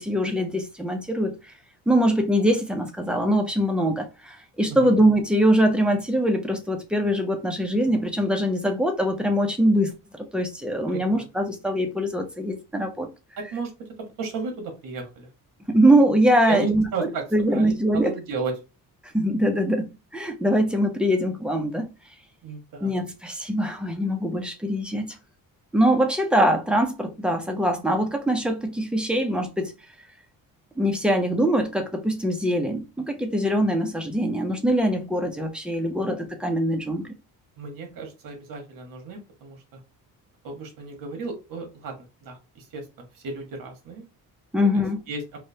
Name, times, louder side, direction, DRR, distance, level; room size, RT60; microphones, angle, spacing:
voice 1, 0.0-1.3 1.9-13.1 15.7-16.8 17.3-18.1 19.1-21.9 22.8-25.2 25.7-29.7 30.8-37.1 44.5-45.0, equal, 5° right, 0.3 m, -23 dB
voice 2, 10.9-11.3 13.4-13.9 14.2-15.3 16.5-18.5 22.4-23.0 35.9-36.2 37.6-39.8 40.4-41.9 42.2-44.0 44.5-45.2, right 3 dB, 65° right, 1.2 m, -34 dB
4.7 x 2.0 x 2.7 m
cardioid pair, 170°, 36 cm